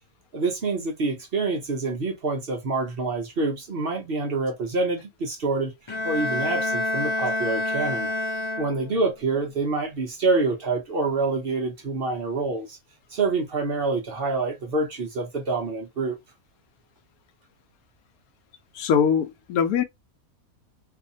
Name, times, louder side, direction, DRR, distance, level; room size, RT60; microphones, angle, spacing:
voice 1, 0.3-5.7 6.0-8.1 8.6-12.8 13.1-16.2, right 3 dB, 50° right, 0.8 m, -26 dB
Bowed string instrument, 5.9-9.1, left 2 dB, 45° left, 0.3 m, -28 dB
voice 2, 18.7-19.8, left 7 dB, 90° left, 1.0 m, -22 dB
2.7 x 2.5 x 2.6 m
omnidirectional pair, 1.5 m